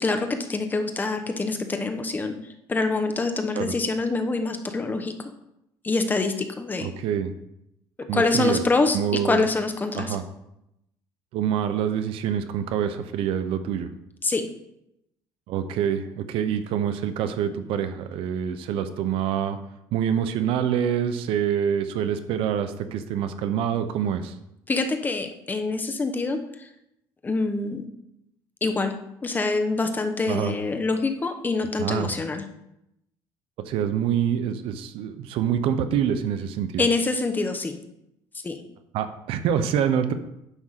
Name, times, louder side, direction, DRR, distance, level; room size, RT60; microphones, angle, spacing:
voice 1, 0.0-2.3 2.7-5.1 5.8-6.9 8.0-10.2 14.2-14.5 24.7-26.7 27.2-27.9 28.6-28.9 29.2-32.4 36.8-37.8 38.4-38.6, left 3 dB, 20° left, 6 dB, 0.9 m, -25 dB
voice 2, 6.8-7.3 8.1-8.6 8.9-9.4 9.9-10.2 11.3-13.9 15.5-19.6 19.9-24.3 30.2-30.5 31.8-32.1 33.6-36.8 38.9-40.1, right 9 dB, 75° right, 10 dB, 0.7 m, -26 dB
9.9 x 3.7 x 6.5 m, 0.83 s
cardioid pair, 130°, 10 cm